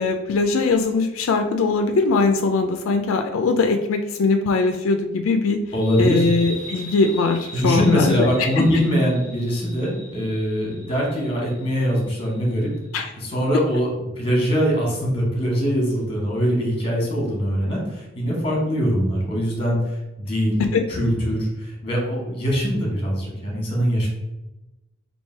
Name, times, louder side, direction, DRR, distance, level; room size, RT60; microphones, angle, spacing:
voice 1, 0.0-5.6 6.0-8.8 12.9-13.1 20.7-20.8, left 4 dB, 85° left, 6 dB, 0.3 m, -21 dB
voice 2, 5.7-6.3 7.5-12.7 13.2-19.8 20.2-20.6 20.9-24.1, equal, 25° left, -2 dB, 1.2 m, -22 dB
sound 1, 5.8-13.0, equal, 35° right, 1.4 m, -40 dB
3.2 x 2.7 x 4.3 m, 0.99 s
head